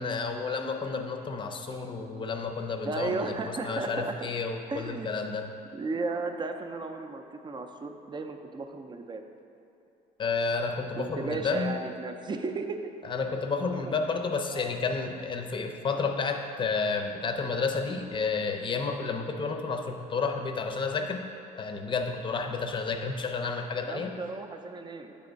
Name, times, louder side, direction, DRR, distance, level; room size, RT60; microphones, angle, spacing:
voice 1, 0.0-5.5 10.2-11.8 13.0-21.2 21.6-24.1, left 4 dB, 30° left, 5 dB, 0.6 m, -31 dB
voice 2, 2.8-4.3 4.7-5.2 5.7-9.2 11.0-12.8 13.6-13.9 14.5-14.7 23.8-25.2, right 3 dB, 25° right, 6 dB, 0.5 m, -35 dB
8.6 x 3.5 x 5.2 m, 2.8 s
cardioid pair, 110°, 17 cm